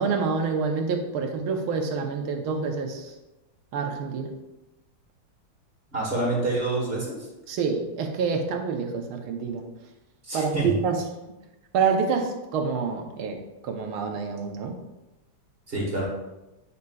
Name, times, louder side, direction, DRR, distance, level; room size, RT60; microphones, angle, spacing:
voice 1, 0.0-3.1 3.7-4.4 7.5-9.6 10.3-11.0 11.7-14.8, right 5 dB, 80° right, 3 dB, 1.7 m, -27 dB
voice 2, 5.9-7.3 10.2-10.7 15.7-16.1, right 2 dB, 30° right, -4 dB, 1.8 m, -27 dB
9.5 x 5.4 x 2.3 m, 1.0 s
omnidirectional pair, 2.3 m